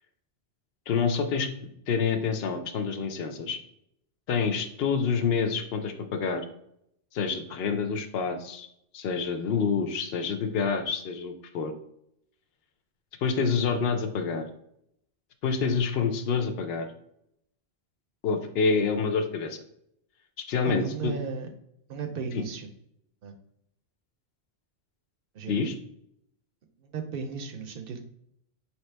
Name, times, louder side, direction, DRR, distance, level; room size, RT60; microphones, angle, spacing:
voice 1, 0.9-1.5 1.9-3.6 4.3-6.4 7.1-8.7 8.9-11.7 13.2-14.5 15.4-16.9 18.2-19.6 20.5-21.1 22.3-22.4 25.5-25.7, left 5 dB, 70° left, 7 dB, 0.8 m, -27 dB
voice 2, 20.6-21.5 21.9-22.7 23.2-23.3 25.3-25.6 26.8-28.0, right 5 dB, 65° right, 6 dB, 0.7 m, -35 dB
4.8 x 2.9 x 3.2 m, 0.76 s
omnidirectional pair, 1.1 m